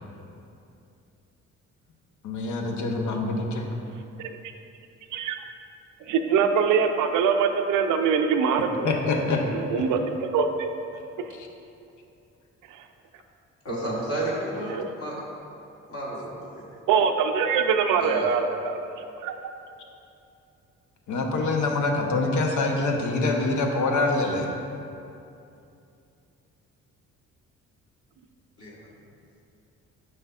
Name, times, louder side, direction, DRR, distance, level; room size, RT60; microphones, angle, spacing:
voice 1, 2.2-3.7 8.8-9.4 11.3-11.5 21.1-24.5, left 3 dB, 80° left, 2 dB, 0.9 m, -25 dB
voice 2, 6.0-9.0 9.5-10.7 12.7-12.8 14.7-14.9 16.9-19.5, right 6 dB, 85° right, 6 dB, 0.5 m, -24 dB
voice 3, 13.6-15.2 15.9-16.3 16.5-16.7 18.0-18.3 28.6-28.8, right 1 dB, 50° left, -6 dB, 1.4 m, -31 dB
9.1 x 5.5 x 2.4 m, 2.7 s
cardioid pair, 90°, 30 cm